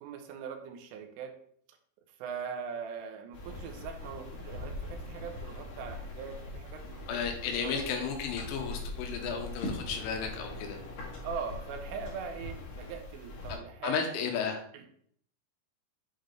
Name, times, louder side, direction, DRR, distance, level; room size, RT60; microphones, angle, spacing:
voice 1, 0.0-1.4 1.7-1.8 2.2-7.9 11.2-14.1 14.7-14.9, right 6 dB, 85° right, 5 dB, 3.2 m, -41 dB
sound 1, 3.3-13.6, left 2 dB, 50° left, 2.4 m, -41 dB
voice 2, 7.1-10.8 13.8-14.6, left 6 dB, 85° left, 3 dB, 3.1 m, -33 dB
8.1 x 3.9 x 3.4 m, 0.63 s
omnidirectional pair, 5.8 m